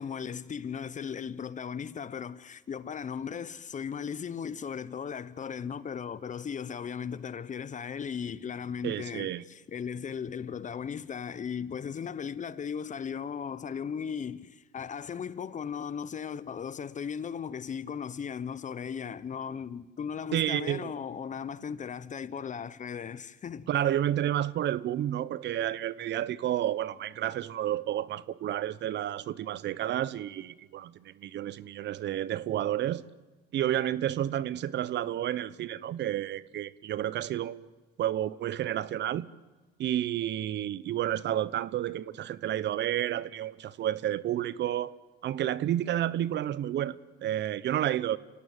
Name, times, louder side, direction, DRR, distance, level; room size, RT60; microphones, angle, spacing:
voice 1, 0.0-23.7, left 7 dB, 35° left, 1.1 m, -37 dB
voice 2, 8.8-9.4 20.3-20.9 23.7-33.1 33.5-37.6 38.0-39.3 39.8-44.9 45.2-48.2, right 12 dB, 55° right, 0.9 m, -30 dB
27.5 x 17.5 x 9.1 m
supercardioid pair, 90°, 21 cm